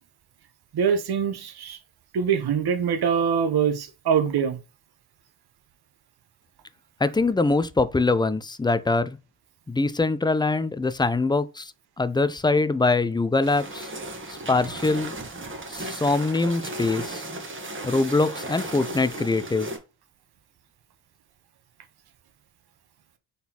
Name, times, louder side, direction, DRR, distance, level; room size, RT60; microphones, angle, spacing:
voice 1, 0.7-1.8 2.1-4.6, right 7 dB, 55° right, 1.0 m, -23 dB
voice 2, 7.0-9.2 9.7-11.7 12.0-13.9 14.5-15.1 15.7-17.2 17.8-19.7, left 3 dB, 10° left, 0.4 m, -23 dB
sound 1, 13.4-19.8, right 2 dB, 25° right, 1.3 m, -35 dB
4.0 x 3.7 x 2.9 m
hypercardioid pair, 40°, 46 cm